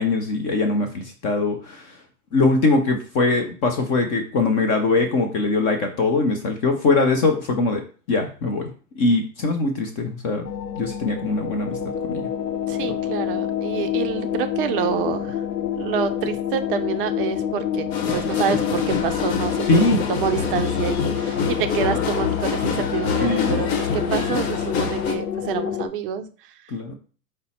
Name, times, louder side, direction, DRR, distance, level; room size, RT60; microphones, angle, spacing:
voice 1, 0.0-2.0 2.3-7.8 8.1-8.7 9.0-10.5 10.8-11.8 12.1-12.2 19.7-20.0 23.2-23.6 26.7-26.9, left 3 dB, 30° left, 5 dB, 0.5 m, -21 dB
sound 1, 10.4-25.9, left 9 dB, 90° left, 0.7 m, -27 dB
voice 2, 12.7-15.4 15.7-17.9 18.1-26.7, right 8 dB, 40° right, 8 dB, 0.4 m, -27 dB
sound 2, 17.9-25.1, left 5 dB, 55° left, 1.1 m, -26 dB
5.3 x 2.1 x 4.1 m, 0.40 s
hypercardioid pair, 110°, 49 cm